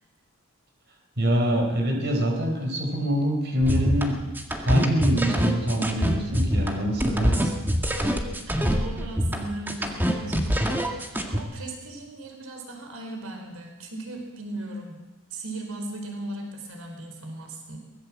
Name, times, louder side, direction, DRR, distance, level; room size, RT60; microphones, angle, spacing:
voice 1, 1.2-4.2 4.6-7.6, equal, 50° right, 2 dB, 4.8 m, -24 dB
sound 1, 3.6-11.4, equal, 10° right, 1.9 m, -25 dB
voice 2, 8.4-15.0 15.3-17.8, right 2 dB, 90° right, 3 dB, 4.4 m, -37 dB
23.5 x 19.5 x 7.5 m, 1.1 s
head